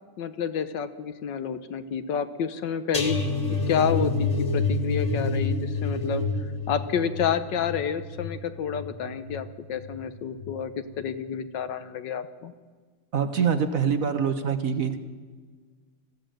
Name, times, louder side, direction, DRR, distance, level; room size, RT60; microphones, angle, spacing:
voice 1, 0.2-3.2 3.5-6.2 6.7-12.5, left 7 dB, 65° left, 12 dB, 1.5 m, -29 dB
sound 1, 2.9-10.0 10.4-10.7 11.0-11.1, left 3 dB, 20° left, 1.7 m, -28 dB
voice 2, 13.1-15.0, right 7 dB, 50° right, 9 dB, 1.3 m, -25 dB
20.0 x 15.0 x 9.1 m, 1.5 s
omnidirectional pair, 2.3 m